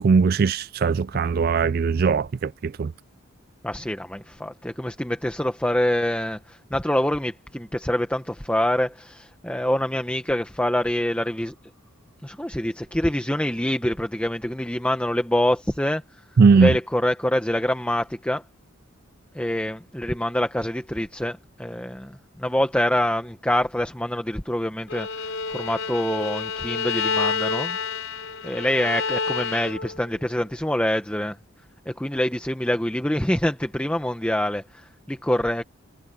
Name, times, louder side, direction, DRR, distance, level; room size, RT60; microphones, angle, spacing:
voice 1, 0.0-2.9 16.4-16.7, right 5 dB, 45° right, 0.3 m, -19 dB
voice 2, 3.6-11.5 12.2-16.0 16.5-18.4 19.3-25.1 25.5-27.8 28.4-31.4 31.9-35.6, left 1 dB, 5° left, 1.2 m, -25 dB
Bowed string instrument, 24.9-30.1, left 5 dB, 75° left, 4.4 m, -28 dB
head